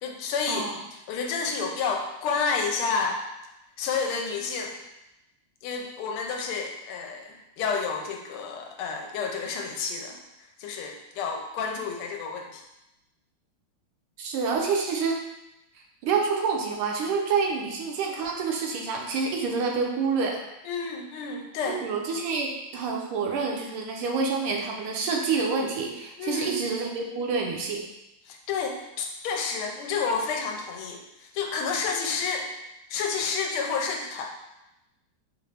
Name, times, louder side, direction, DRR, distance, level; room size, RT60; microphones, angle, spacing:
voice 1, 0.0-3.2 3.8-4.8 5.6-10.2 10.6-12.6 20.6-21.8 26.2-26.6 28.2-32.5 32.9-34.3, left 5 dB, 85° left, 2 dB, 1.5 m, -30 dB
voice 2, 14.2-15.2 16.0-20.4 21.7-27.8, right 5 dB, 85° right, 1 dB, 1.6 m, -27 dB
4.3 x 2.5 x 3.2 m, 0.93 s
omnidirectional pair, 2.3 m